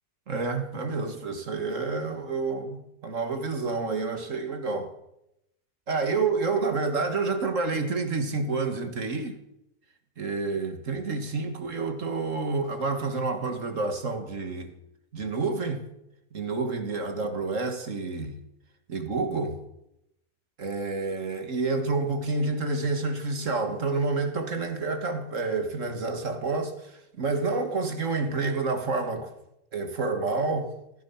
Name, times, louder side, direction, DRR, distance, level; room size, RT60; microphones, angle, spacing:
voice 1, 0.3-4.9 5.9-9.3 10.2-14.7 15.1-15.8 16.3-18.3 18.9-19.6 20.6-29.3 29.7-30.7, right 3 dB, 45° right, 1.9 m, -29 dB
16.5 x 14.0 x 5.7 m
omnidirectional pair, 2.0 m